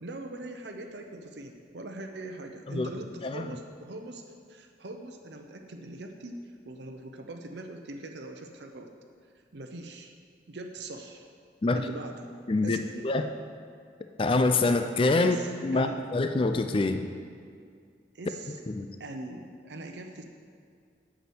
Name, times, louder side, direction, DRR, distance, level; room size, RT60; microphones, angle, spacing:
voice 1, 0.0-4.2 4.5-6.4 6.6-8.9 9.5-10.1 10.5-11.3 11.7-12.3 12.6-12.8 15.2-16.0 18.1-18.6 19.0-20.2, right 2 dB, 75° right, 4 dB, 0.7 m, -41 dB
voice 2, 12.5-13.3 14.2-15.4 15.6-17.1 18.7-18.9, left 3 dB, 30° left, 7 dB, 0.4 m, -25 dB
8.3 x 6.1 x 7.8 m, 2.2 s
head